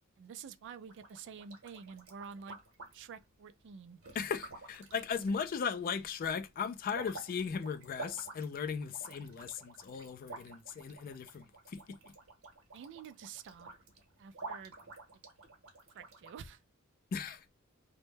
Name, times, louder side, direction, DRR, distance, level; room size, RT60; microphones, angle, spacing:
voice 1, 0.2-2.6 2.9-4.0 12.7-13.7 14.2-14.7 15.9-16.6, right 6 dB, 60° right, 0.3 m, -49 dB
sound 1, 0.9-3.2 4.0-5.9 6.2-16.3, right 3 dB, 75° right, 0.9 m, -50 dB
voice 2, 4.1-12.0 17.1-17.4, left 6 dB, 45° left, 0.3 m, -37 dB
2.1 x 2.1 x 3.0 m
head